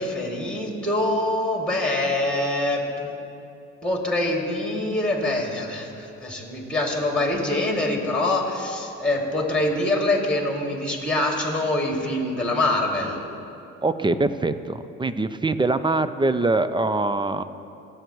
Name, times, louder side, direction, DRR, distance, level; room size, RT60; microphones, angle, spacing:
voice 1, 0.0-3.1 3.8-13.2, left 1 dB, 5° left, 0 dB, 2.4 m, -24 dB
voice 2, 13.8-17.4, right 2 dB, 15° right, 12 dB, 0.5 m, -23 dB
19.5 x 7.9 x 3.1 m, 2.7 s
supercardioid pair, 70°, 35 cm